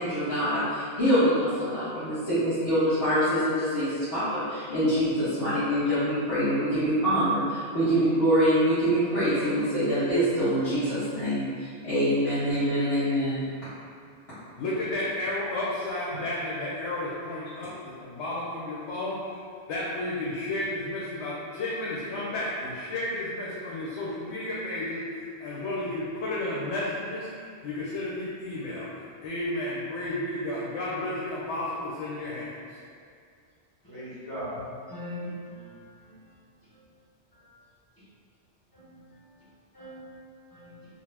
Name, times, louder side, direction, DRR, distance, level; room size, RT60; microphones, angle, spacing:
voice 1, 0.0-13.4, equal, 65° left, -15 dB, 1.2 m, -25 dB
voice 2, 14.5-19.4 19.7-28.9 29.2-32.8, left 1 dB, 80° left, -7 dB, 0.9 m, -32 dB
voice 3, 33.9-34.6 34.9-35.4 38.7-39.0 39.7-40.0 40.5-40.8, equal, 20° left, -11 dB, 0.8 m, -38 dB
2.6 x 2.0 x 3.2 m, 2.2 s
omnidirectional pair, 1.2 m